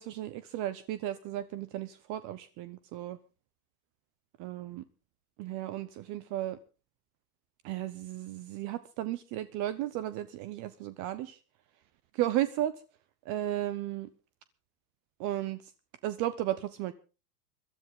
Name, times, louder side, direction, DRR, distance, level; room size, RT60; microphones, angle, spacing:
voice 1, 0.0-3.2 4.4-4.8 5.4-6.6 7.6-11.4 12.1-12.8 13.2-14.1 15.2-15.7 16.0-16.9, right 13 dB, 40° right, 15 dB, 0.8 m, -34 dB
22.0 x 13.0 x 3.8 m, 0.33 s
hypercardioid pair, 105°, 47 cm